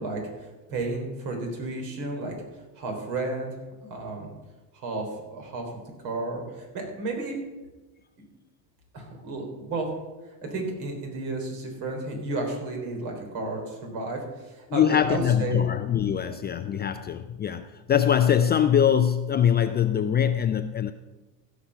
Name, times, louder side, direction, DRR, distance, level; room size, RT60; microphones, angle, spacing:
voice 1, 0.0-2.3 2.8-3.6 3.9-4.3 4.7-5.1 5.3-5.7 6.0-7.4 8.9-9.9 10.3-15.6, right 2 dB, 60° right, 4.0 m, -32 dB
voice 2, 14.7-20.9, left 9 dB, 25° left, 0.4 m, -23 dB
15.5 x 6.0 x 5.8 m
supercardioid pair, 100°, 43 cm